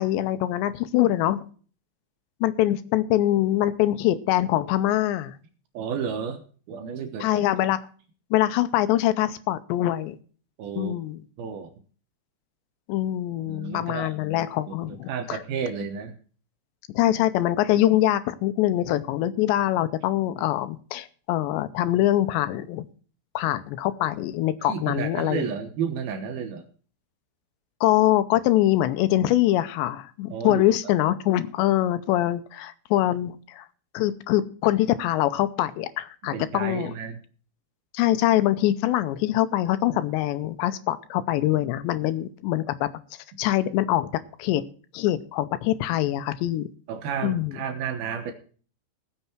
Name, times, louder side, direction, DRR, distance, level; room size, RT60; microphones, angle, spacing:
voice 1, 0.0-1.4 2.4-5.4 7.2-7.8 8.3-10.2 10.8-11.2 12.9-15.4 17.0-22.9 23.4-25.5 27.8-33.7 33.9-36.9 37.9-42.9 43.4-44.1 44.4-44.6 44.9-46.7 47.2-47.6, left 14 dB, 80° left, 12 dB, 2.8 m, -24 dB
voice 2, 5.7-6.4 6.7-7.4 10.6-11.0 11.4-11.7 13.5-14.1 14.7-16.2 24.7-26.6 30.3-30.6 36.2-37.2 46.9-48.3, right 6 dB, 70° right, 6 dB, 2.5 m, -31 dB
20.0 x 6.8 x 4.5 m, 0.42 s
omnidirectional pair, 5.2 m